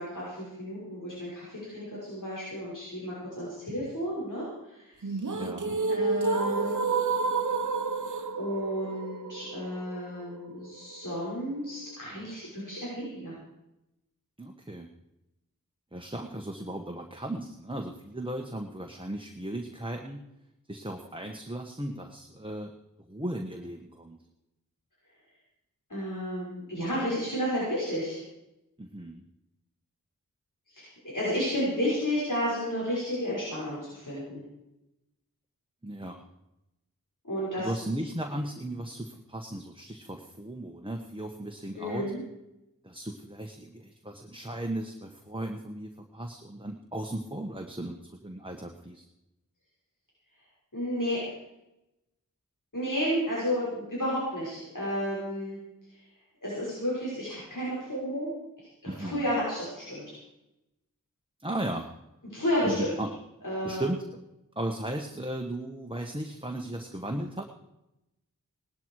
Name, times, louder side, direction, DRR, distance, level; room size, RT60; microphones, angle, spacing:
voice 1, 0.0-5.3 5.9-6.8 8.4-13.3 25.9-28.2 30.7-30.9 31.1-34.4 37.2-37.7 41.8-42.2 50.7-51.2 52.7-55.6 55.9-56.0 56.4-58.3 58.6-60.2 62.3-62.9 63.4-63.9, equal, 70° left, -8 dB, 5.9 m, -32 dB
sound 1, 5.0-11.0, right 4 dB, 65° right, 1.0 m, -30 dB
voice 2, 5.3-5.7 14.4-14.9 15.9-20.2 20.7-22.7 23.1-24.2 28.8-29.2 35.8-36.2 37.6-42.1 42.8-49.1 58.9-59.2 61.4-61.9 62.6-63.1 63.6-64.0 64.5-67.4, right 1 dB, 15° right, 3 dB, 1.4 m, -36 dB
18.5 x 12.0 x 4.8 m, 0.91 s
wide cardioid pair, 40°, 33 cm